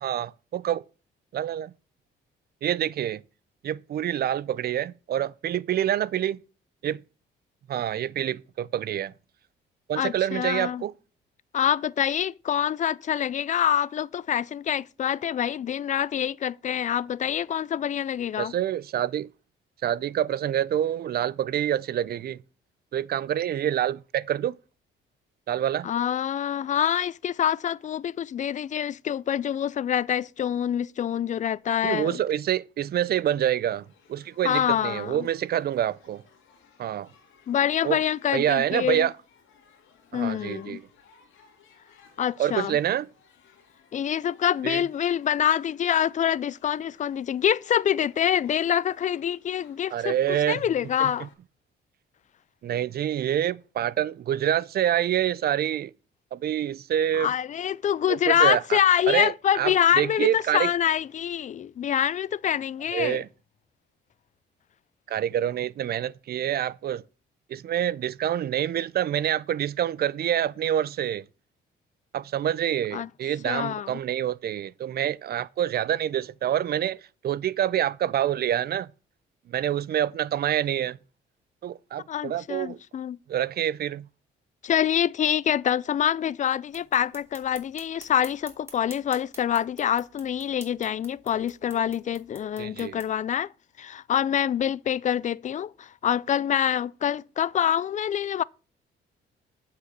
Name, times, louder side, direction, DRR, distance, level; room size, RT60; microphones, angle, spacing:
voice 1, 0.0-0.8 1.3-1.7 2.6-3.2 3.6-6.4 6.8-7.0 7.7-9.1 9.9-10.9 18.4-19.3 19.8-22.4 22.9-24.5 25.5-25.9 31.8-36.2 36.8-37.1 37.8-38.0 38.3-39.1 40.1-40.8 42.4-43.1 44.6-44.8 49.9-50.6 51.0-51.1 52.6-55.9 56.3-57.3 58.1-58.8 59.1-60.7 62.9-63.3 65.1-67.0 67.5-71.2 72.1-77.0 77.2-78.9 79.5-81.0 81.6-82.8 83.3-84.1 92.6-93.0, right 11 dB, 55° right, 0.4 m, -27 dB
voice 2, 10.0-10.8 11.5-18.5 25.8-32.2 34.4-35.3 37.5-39.1 40.1-40.8 42.2-42.8 43.9-51.3 57.2-63.2 72.9-73.1 73.4-73.9 82.1-83.2 84.6-93.5 93.8-98.4, left 9 dB, 40° left, 0.4 m, -26 dB
Shout / Human group actions, 33.7-51.3, left 6 dB, 80° left, 2.4 m, -59 dB
sound 1, 86.7-93.1, right 2 dB, 10° right, 2.9 m, -50 dB
8.3 x 5.0 x 6.5 m
cardioid pair, 90°, 20 cm